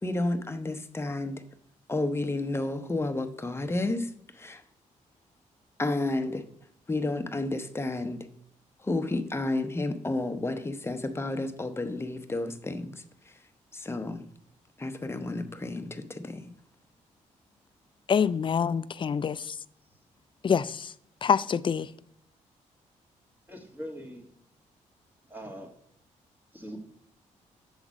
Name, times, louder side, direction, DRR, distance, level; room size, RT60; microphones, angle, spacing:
voice 1, 0.0-1.4 1.9-4.6 5.8-6.5 6.9-8.3 8.8-13.0 13.7-14.3 14.8-16.5, left 2 dB, 20° left, 0.9 m, -31 dB
voice 2, 18.1-19.6 20.4-20.9 21.2-21.9, left 6 dB, 40° left, 0.4 m, -26 dB
voice 3, 23.5-24.3 25.3-25.7 26.5-26.8, equal, 15° right, 2.0 m, -41 dB
7.1 x 3.9 x 6.1 m
cardioid pair, 75°, 14 cm